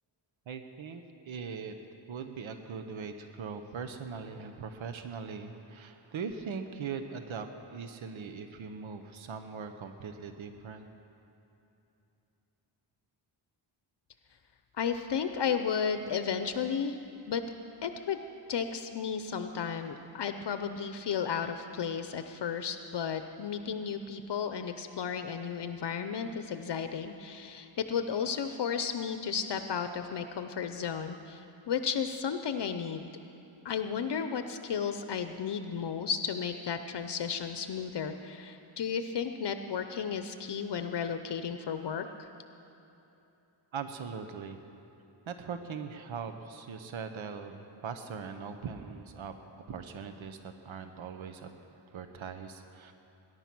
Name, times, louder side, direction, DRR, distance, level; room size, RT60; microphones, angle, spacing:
voice 1, 0.5-1.7 2.1-10.9 43.7-44.6 45.3-49.3 49.7-52.9, right 5 dB, 80° right, 8 dB, 1.0 m, -40 dB
voice 2, 14.8-17.0 17.3-17.4 17.8-18.2 18.5-33.1 33.6-42.3, left 7 dB, 60° left, 8 dB, 0.7 m, -33 dB
21.0 x 11.0 x 6.1 m, 2.9 s
wide cardioid pair, 135°, 47 cm